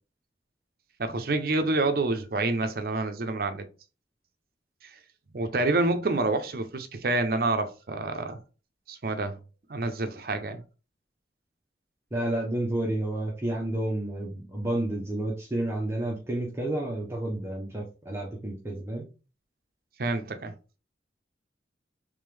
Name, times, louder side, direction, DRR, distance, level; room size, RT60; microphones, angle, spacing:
voice 1, 1.0-3.7 4.8-4.9 5.3-8.4 8.9-9.4 9.7-10.6 20.0-20.5, right 2 dB, 55° right, 0.6 m, -27 dB
voice 2, 12.1-19.1, right 1 dB, 15° right, 0.8 m, -30 dB
3.6 x 3.4 x 3.3 m
head